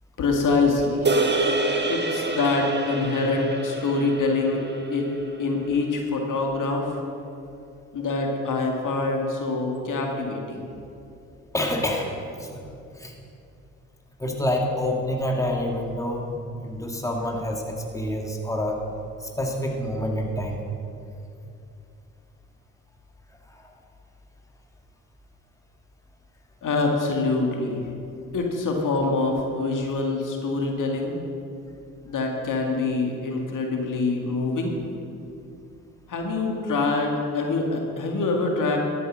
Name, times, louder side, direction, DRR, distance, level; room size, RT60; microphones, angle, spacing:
voice 1, 0.2-1.1 1.9-5.1 5.4-6.9 7.9-10.6 26.6-27.8 28.3-31.2 32.0-34.8 36.1-38.8, left 3 dB, 60° left, 1 dB, 2.1 m, -25 dB
sound 1, 1.0-5.5, right 2 dB, 30° right, 1.4 m, -27 dB
voice 2, 11.5-12.1 12.4-12.6 12.9-13.1 14.2-18.8 19.2-20.6 23.5-23.7, left 1 dB, 10° left, 0 dB, 2.0 m, -27 dB
12.5 x 8.3 x 6.4 m, 2.6 s
hypercardioid pair, 50°, 36 cm